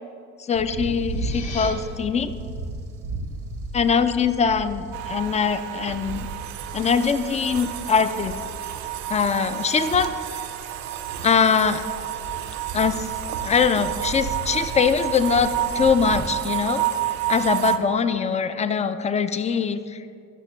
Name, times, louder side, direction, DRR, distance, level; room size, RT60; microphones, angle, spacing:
voice 1, 0.5-2.3 3.7-6.3 6.7-8.3 9.1-10.4 11.2-11.8 12.7-13.1 13.4-15.5 15.7-16.8 17.3-20.0, left 6 dB, 20° left, 11 dB, 0.3 m, -22 dB
sound 1, 0.5-16.2, right 3 dB, 85° right, 1.2 m, -36 dB
sound 2, 0.9-1.7, left 5 dB, 60° left, 1.3 m, -38 dB
sound 3, 4.9-17.8, right 13 dB, 65° right, 0.6 m, -30 dB
11.5 x 5.9 x 3.1 m, 2.5 s
hypercardioid pair, 55°, 43 cm